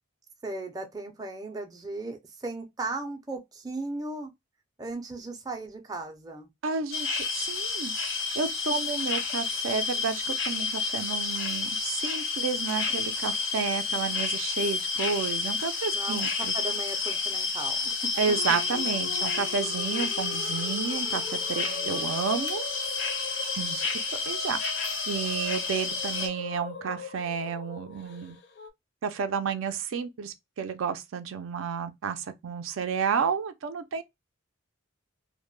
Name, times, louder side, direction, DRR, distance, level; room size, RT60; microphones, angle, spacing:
voice 1, 0.4-4.3 4.8-6.5 15.9-17.9 18.7-18.8 21.5-22.2, right 2 dB, 20° right, 0.4 m, -37 dB
voice 2, 6.6-7.9 8.4-16.5 18.2-22.6 23.6-23.9 24.3-28.4 29.0-34.0, right 6 dB, 80° right, 0.4 m, -31 dB
sound 1, 6.9-26.3, left 4 dB, 85° left, 0.8 m, -30 dB
sound 2, 18.2-28.7, left 5 dB, 50° left, 0.4 m, -41 dB
2.1 x 2.1 x 3.0 m
head